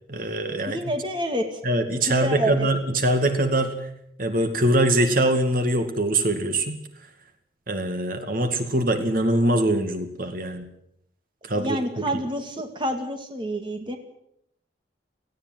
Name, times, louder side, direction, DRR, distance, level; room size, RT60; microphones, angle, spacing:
voice 1, 0.1-0.8 1.6-3.7 4.2-6.8 7.7-10.6 11.4-12.0, right 1 dB, 50° right, 7 dB, 2.3 m, -23 dB
voice 2, 0.7-1.6 2.1-2.7 11.5-14.0, right 1 dB, 25° right, 5 dB, 2.3 m, -28 dB
18.5 x 16.0 x 9.7 m, 0.76 s
head